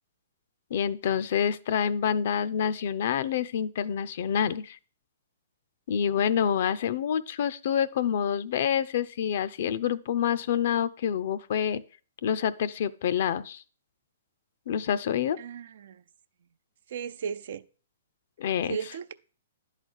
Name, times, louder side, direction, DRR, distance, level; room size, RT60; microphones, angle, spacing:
voice 1, 0.7-4.8 5.9-11.8 12.2-13.6 14.7-15.4 18.4-18.8, left 8 dB, 60° left, 0.5 m, -27 dB
voice 2, 15.4-16.0 16.9-17.6 18.7-19.1, right 7 dB, 65° right, 0.5 m, -35 dB
10.5 x 4.0 x 6.3 m
hypercardioid pair, 135°, 0 cm